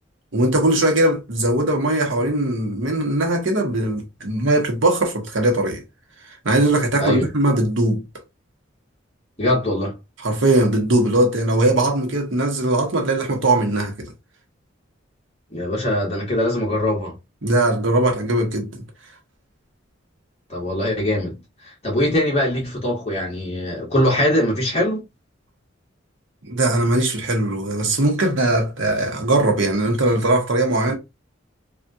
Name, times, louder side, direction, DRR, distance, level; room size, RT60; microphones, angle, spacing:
voice 1, 0.3-5.8 6.4-8.0 10.2-14.1 17.4-18.9 26.4-31.0, right 1 dB, 75° right, 1.1 m, -20 dB
voice 2, 9.4-9.9 15.5-17.1 20.5-21.4 21.8-25.0, left 1 dB, 35° left, 1.6 m, -22 dB
3.4 x 2.4 x 2.7 m
head